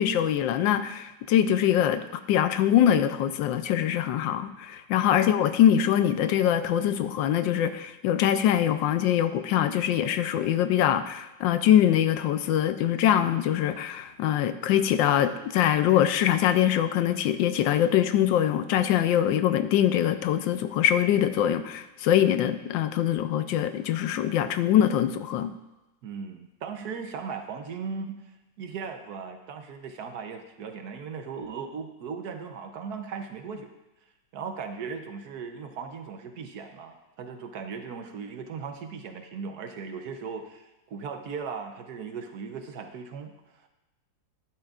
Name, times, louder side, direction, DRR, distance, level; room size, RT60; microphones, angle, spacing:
voice 1, 0.0-25.5, left 10 dB, 90° left, 10 dB, 1.3 m, -23 dB
voice 2, 26.0-33.7 34.3-43.7, right 5 dB, 65° right, 6 dB, 1.2 m, -38 dB
12.0 x 11.5 x 2.4 m, 1.0 s
omnidirectional pair, 2.0 m